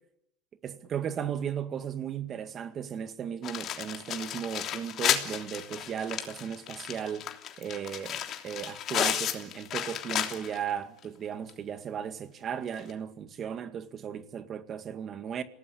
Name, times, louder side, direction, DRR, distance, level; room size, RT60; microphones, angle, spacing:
voice 1, 0.6-7.3 7.6-15.4, right 8 dB, 40° right, 2.0 m, -36 dB
sound 1, 3.4-10.7 11.0-11.1 11.5-11.6 12.8-12.9, left 10 dB, 45° left, 3.2 m, -33 dB
27.5 x 18.5 x 9.9 m
supercardioid pair, 115°, 0 cm